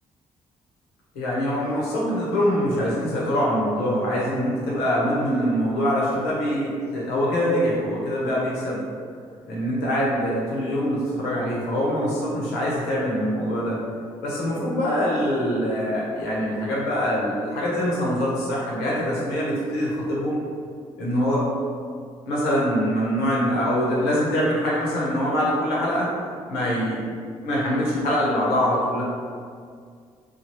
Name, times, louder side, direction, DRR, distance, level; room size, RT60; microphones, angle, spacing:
voice 1, 1.1-8.8 9.4-13.8 14.2-20.4 21.0-21.5 22.2-26.1 26.5-27.0 27.4-29.0, equal, 80° left, -6 dB, 0.8 m, -24 dB
3.0 x 2.2 x 3.0 m, 2.1 s
hypercardioid pair, 45°, 16 cm